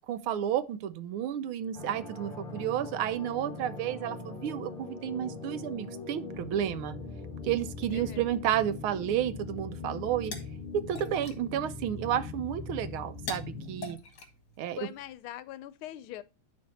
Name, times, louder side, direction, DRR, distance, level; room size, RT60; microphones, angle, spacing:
voice 1, 0.1-7.0 7.4-10.3 10.7-14.0 14.6-14.8, right 10 dB, 75° right, 1.5 m, -31 dB
sound 1, 1.7-13.9, left 4 dB, 25° left, 1.8 m, -41 dB
voice 2, 7.9-8.3 14.8-16.2, left 13 dB, 80° left, 1.5 m, -42 dB
sound 2, 9.8-15.1, left 4 dB, 50° left, 2.2 m, -46 dB
10.5 x 4.6 x 4.2 m
omnidirectional pair, 2.4 m